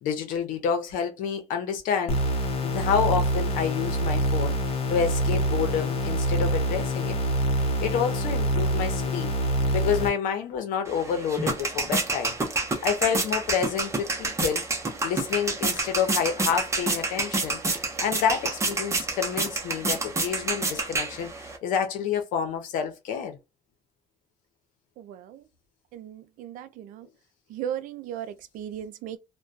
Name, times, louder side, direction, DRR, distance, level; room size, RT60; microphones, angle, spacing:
voice 1, 0.0-2.2 2.6-4.5 4.9-7.2 7.8-9.3 9.7-12.4 12.8-14.6 15.0-21.3 21.6-23.4, left 7 dB, 80° left, 0.7 m, -28 dB
sound 1, 2.1-10.1, right 1 dB, 45° left, 0.9 m, -26 dB
sound 2, 10.9-21.6, right 3 dB, 20° right, 0.7 m, -29 dB
voice 2, 25.0-25.4 25.9-27.1 27.5-29.2, right 10 dB, 75° right, 0.4 m, -36 dB
2.2 x 2.2 x 2.6 m
cardioid pair, 100°, 14 cm